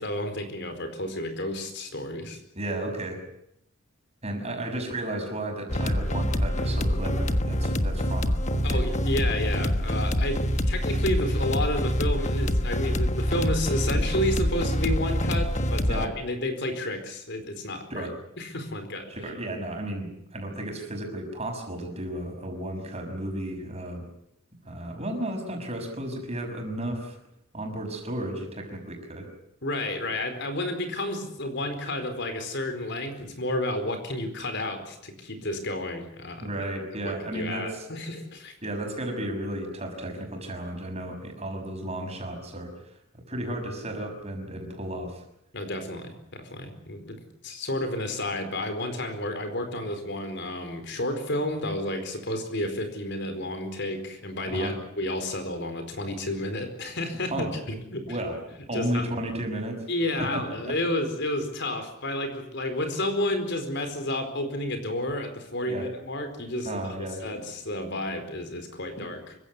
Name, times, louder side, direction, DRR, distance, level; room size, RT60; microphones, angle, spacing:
voice 1, 0.0-2.4 8.6-18.1 18.4-19.1 29.6-36.5 37.0-38.5 45.5-58.0 58.7-59.1 59.9-69.4, left 1 dB, 55° left, 7 dB, 4.5 m, -31 dB
voice 2, 2.5-3.2 4.2-8.8 15.9-16.1 17.9-18.1 19.1-24.0 24.6-27.2 27.5-29.3 36.4-37.9 38.6-42.7 43.3-45.2 54.5-54.7 57.3-57.5 58.1-58.4 58.7-59.8 60.2-60.7 65.7-65.9 66.6-67.2, right 1 dB, 30° right, 3 dB, 6.0 m, -33 dB
sound 1, 5.7-16.1, equal, 35° left, 1.4 m, -26 dB
26.0 x 16.0 x 9.8 m, 0.77 s
head